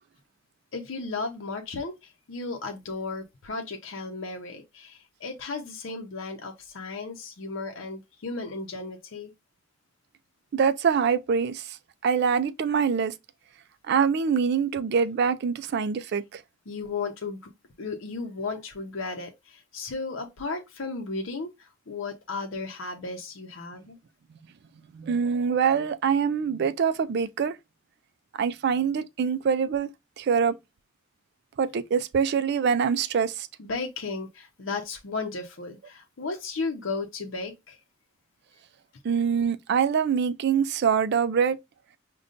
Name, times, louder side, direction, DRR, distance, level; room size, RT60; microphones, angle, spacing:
voice 1, 0.7-9.3 16.7-17.5 17.8-24.0 33.6-37.8, left 3 dB, 70° left, 0.7 m, -35 dB
voice 2, 10.5-11.8 12.0-13.1 13.9-16.4 24.9-27.6 28.4-29.9 30.2-30.5 31.6-33.5 39.0-41.6, right 6 dB, 55° right, 0.3 m, -24 dB
5.1 x 2.2 x 2.5 m
head